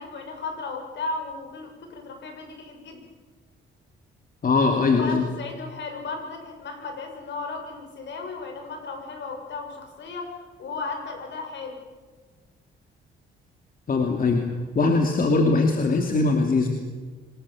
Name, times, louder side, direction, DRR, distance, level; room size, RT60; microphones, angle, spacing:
voice 1, 0.0-3.0 4.9-11.8, left 3 dB, 65° left, 3 dB, 6.7 m, -35 dB
voice 2, 4.4-5.2 13.9-14.4 14.7-16.7, left 3 dB, 45° left, 3 dB, 2.7 m, -21 dB
26.0 x 20.0 x 7.2 m, 1.4 s
cardioid pair, 90°, 20 cm